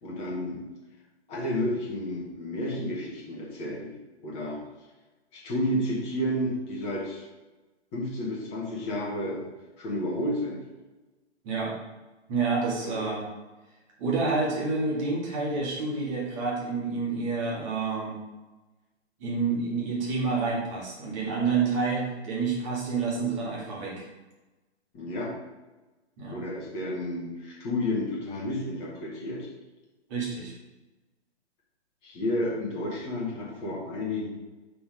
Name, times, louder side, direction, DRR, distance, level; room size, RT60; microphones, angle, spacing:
voice 1, 0.0-0.6 1.3-4.6 5.3-7.3 7.9-9.4 9.8-10.6 12.8-12.9 24.9-25.3 26.3-29.5 32.0-34.3, left 1 dB, 20° left, -4 dB, 1.6 m, -31 dB
voice 2, 12.3-13.3 14.0-18.1 19.2-24.1 26.2-26.4 30.1-30.5, right 4 dB, 25° right, -4 dB, 2.0 m, -28 dB
5.7 x 4.0 x 5.1 m, 1.1 s
figure-of-eight pair, 130°, 34 cm